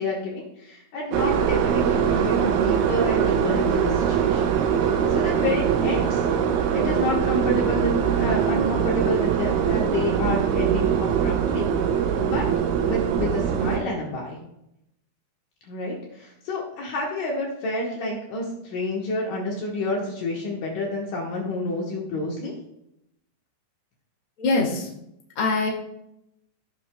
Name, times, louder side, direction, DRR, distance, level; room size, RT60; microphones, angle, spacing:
voice 1, 0.0-4.5 4.9-6.2 6.7-11.7 12.2-12.4 12.9-14.4 15.7-22.5, left 2 dB, 70° left, -2 dB, 2.1 m, -29 dB
sound 1, 1.1-13.8, right 8 dB, 85° right, 3.3 m, -22 dB
voice 2, 24.4-24.9 25.3-25.7, left 3 dB, 85° left, -4 dB, 0.7 m, -23 dB
17.0 x 6.4 x 2.2 m, 0.81 s
omnidirectional pair, 5.6 m